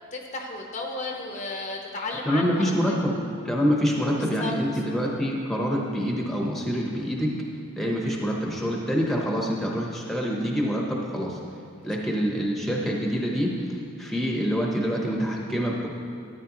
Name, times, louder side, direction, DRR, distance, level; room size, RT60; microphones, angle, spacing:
voice 1, 0.1-3.0 4.4-4.5 11.8-11.9, left 3 dB, 35° left, 1 dB, 0.8 m, -34 dB
voice 2, 2.2-3.2 3.4-7.3 7.8-11.4 11.8-15.9, equal, ahead, -2 dB, 0.9 m, -26 dB
13.0 x 10.0 x 3.0 m, 2.5 s
head